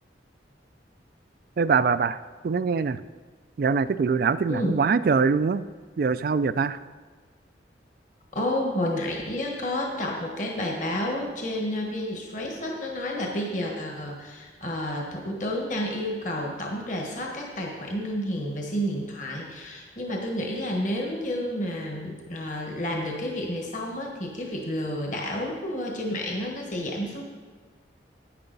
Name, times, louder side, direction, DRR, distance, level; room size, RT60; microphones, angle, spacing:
voice 1, 1.6-2.2 2.4-3.0 3.6-5.6 6.0-6.8, right 5 dB, 50° right, 15 dB, 0.3 m, -23 dB
voice 2, 8.3-27.2, left 1 dB, 45° left, 1 dB, 1.3 m, -30 dB
10.5 x 9.5 x 4.0 m, 1.5 s
head